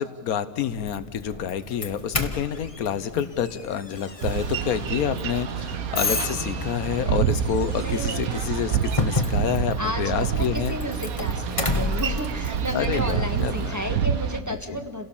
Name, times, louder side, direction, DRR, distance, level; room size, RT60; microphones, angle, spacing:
voice 1, 0.0-10.7 12.7-14.0 14.7-14.8, left 8 dB, 85° left, 13 dB, 1.3 m, -28 dB
Doorbell, 0.7-13.8, left 3 dB, 25° left, 1.3 m, -32 dB
Boat Water vehicle, 4.2-14.4, right 8 dB, 80° right, 1.3 m, -28 dB
voice 2, 7.7-8.4 9.8-15.1, equal, 10° right, 3 dB, 1.6 m, -32 dB
29.0 x 17.0 x 7.2 m, 1.4 s
omnidirectional pair, 1.5 m